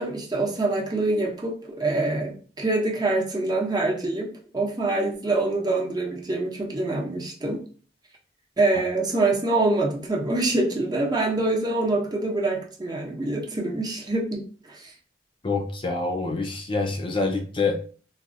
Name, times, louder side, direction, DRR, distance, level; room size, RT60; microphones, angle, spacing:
voice 1, 0.0-4.3 4.5-7.6 8.6-14.4 14.7-14.9, right 2 dB, 25° right, 0 dB, 0.7 m, -25 dB
voice 2, 15.4-17.9, left 3 dB, 30° left, 3 dB, 0.4 m, -26 dB
4.0 x 2.3 x 2.6 m, 0.41 s
head